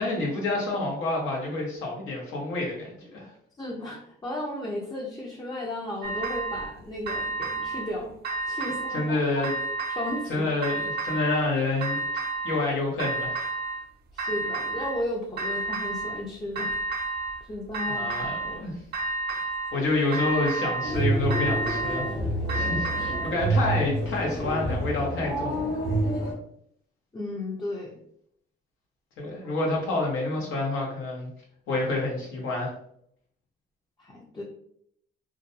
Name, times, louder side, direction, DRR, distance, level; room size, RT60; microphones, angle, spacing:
voice 1, 0.0-3.3 8.9-9.5 10.3-12.0 12.4-13.5 17.9-18.7 19.3-22.0 22.5-25.7 29.2-31.3 31.7-32.7, left 2 dB, 90° left, -2 dB, 0.9 m, -28 dB
voice 2, 3.6-8.1 8.5-9.5 9.9-10.5 14.1-16.7 17.5-18.3 27.1-28.0 29.2-29.3 34.0-34.4, left 1 dB, 20° left, -2 dB, 0.5 m, -34 dB
sound 1, 6.0-6.7 7.1-7.9 8.2-9.1 9.4-10.3 10.6-11.5 11.8-12.7 13.0-13.9 14.2-15.0 15.4-16.2 16.6-17.4 17.7-18.6 18.9-19.8 20.1-21.0 21.3-23.4, right 2 dB, 55° right, 0.5 m, -31 dB
sound 2, 20.8-26.3, right 1 dB, 55° left, 1.0 m, -28 dB
2.4 x 2.1 x 2.7 m, 0.70 s
cardioid pair, 90°, 20 cm